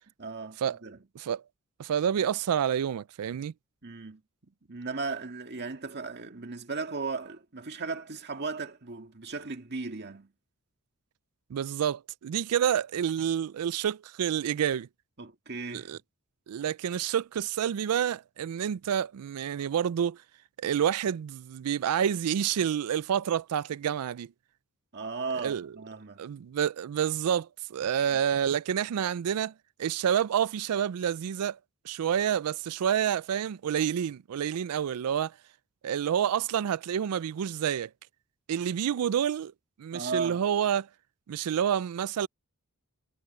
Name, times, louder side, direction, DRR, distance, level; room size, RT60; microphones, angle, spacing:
voice 1, 0.2-1.0 3.8-10.3 15.2-15.9 24.9-26.3 39.9-40.4, right 4 dB, 50° right, 2.0 m, -36 dB
voice 2, 1.8-3.5 11.5-14.9 15.7-16.0 16.5-20.2 20.6-24.3 25.4-25.7 26.2-29.5 29.8-31.6 31.8-35.3 35.8-37.9 38.5-39.5 39.8-40.9 41.3-42.3, right 9 dB, 85° right, 0.4 m, -28 dB
head